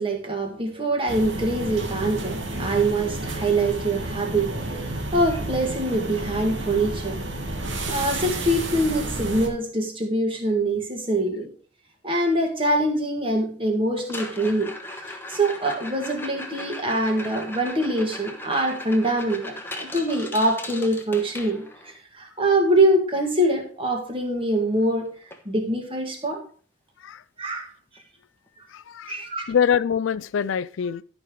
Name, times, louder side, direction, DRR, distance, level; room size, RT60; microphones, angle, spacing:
voice 1, 0.0-7.2 7.9-11.5 12.0-14.7 15.1-25.2 25.5-26.4 27.4-27.7 29.1-29.4, right 1 dB, 25° right, 1.9 m, -24 dB
sound 1, 1.1-9.5, right 2 dB, 75° right, 1.9 m, -31 dB
sound 2, 14.0-22.0 24.2-24.3 24.6-24.9 25.3-25.4 26.0-26.1 28.0-28.1, left 1 dB, 10° left, 1.1 m, -38 dB
voice 2, 28.7-31.0, left 7 dB, 75° left, 0.4 m, -25 dB
12.0 x 5.3 x 4.8 m
head